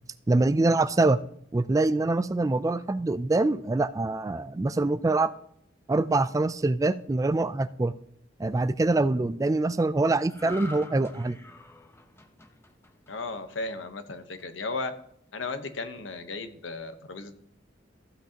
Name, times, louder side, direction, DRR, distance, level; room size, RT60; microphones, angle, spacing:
voice 1, 0.3-1.2 1.5-5.3 5.9-7.9 8.4-11.4, right 2 dB, 20° right, 14 dB, 0.3 m, -24 dB
sound 1, 10.3-13.8 14.2-14.4, left 1 dB, 15° left, 0.9 m, -46 dB
voice 2, 13.1-14.9 15.3-17.3, left 3 dB, 90° left, 9 dB, 1.0 m, -35 dB
14.5 x 8.2 x 2.9 m, 0.69 s
head